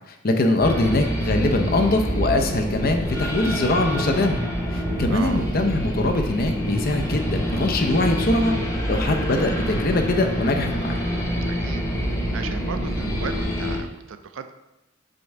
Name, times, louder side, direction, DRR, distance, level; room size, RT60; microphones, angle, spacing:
voice 1, 0.1-4.4 4.7-8.5 8.9-11.0, left 2 dB, 50° left, 4 dB, 0.6 m, -22 dB
sound 1, 0.6-13.8, equal, 15° left, 0.8 m, -26 dB
voice 2, 5.1-5.5 11.5-11.8 12.3-14.5, right 6 dB, 70° right, 9 dB, 0.5 m, -35 dB
5.3 x 3.5 x 5.3 m, 0.95 s
head